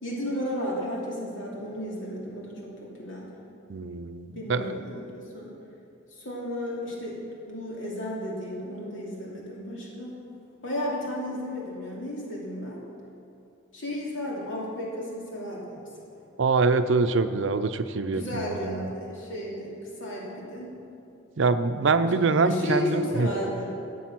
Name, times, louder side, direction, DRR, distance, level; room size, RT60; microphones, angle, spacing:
voice 1, 0.0-3.3 4.3-5.5 6.2-10.3 10.6-12.8 13.7-15.9 18.1-20.7 22.0-23.7, left 1 dB, 70° left, -4 dB, 2.8 m, -33 dB
voice 2, 3.7-4.8 16.4-18.9 21.4-23.3, right 4 dB, 70° right, 10 dB, 0.6 m, -24 dB
13.0 x 8.4 x 6.1 m, 2.6 s
head